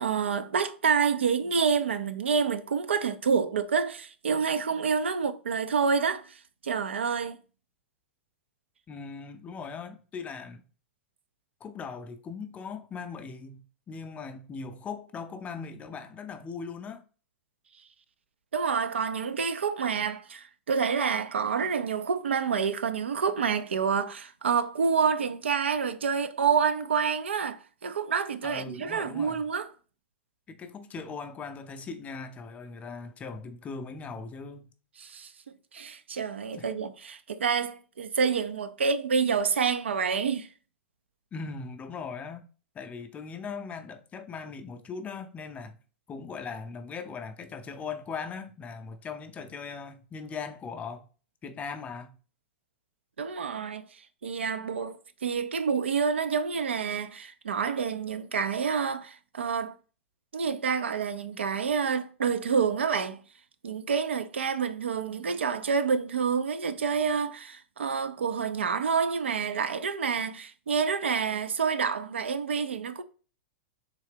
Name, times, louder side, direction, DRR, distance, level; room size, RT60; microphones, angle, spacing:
voice 1, 0.0-7.4 18.5-29.7 35.0-35.3 35.7-40.5 53.2-59.8 60.3-63.2 63.6-73.0, right 6 dB, 85° right, 0.4 m, -28 dB
voice 2, 8.9-10.6 11.6-17.0 28.4-29.4 30.5-34.7 36.5-36.7 41.3-42.4 42.7-45.8 46.1-51.1 51.4-52.2, left 5 dB, 20° left, 0.5 m, -39 dB
3.6 x 2.7 x 3.4 m
hypercardioid pair, 105°, 6 cm